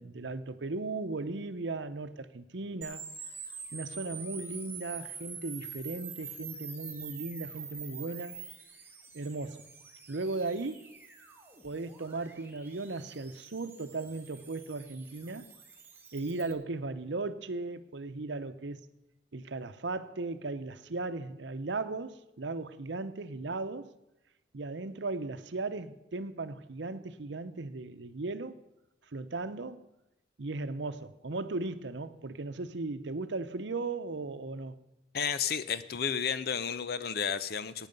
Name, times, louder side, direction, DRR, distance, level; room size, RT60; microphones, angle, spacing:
voice 1, 0.0-3.1 3.7-8.4 9.1-9.7 10.1-10.9 11.6-15.5 16.1-18.8 19.3-23.9 24.5-28.6 29.1-29.8 30.4-34.7, right 3 dB, 80° right, 0.8 m, -37 dB
sound 1, 2.8-16.5, right 5 dB, 10° right, 1.5 m, -46 dB
voice 2, 35.1-37.9, left 7 dB, 55° left, 0.6 m, -32 dB
17.5 x 9.1 x 5.3 m
head